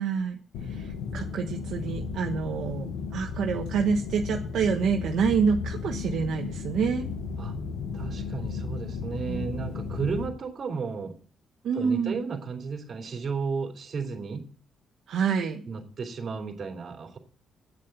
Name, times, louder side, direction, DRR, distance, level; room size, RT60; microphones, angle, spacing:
voice 1, 0.0-7.1 9.3-9.4 11.6-12.2 15.1-15.6, right 6 dB, 70° right, 2 dB, 1.1 m, -27 dB
sound 1, 0.5-10.3, left 5 dB, 90° left, 1.6 m, -34 dB
voice 2, 7.9-11.1 11.7-14.5 15.6-17.2, right 5 dB, 45° right, 3 dB, 3.2 m, -33 dB
8.6 x 7.6 x 7.9 m, 0.43 s
cardioid pair, 90°, 0 cm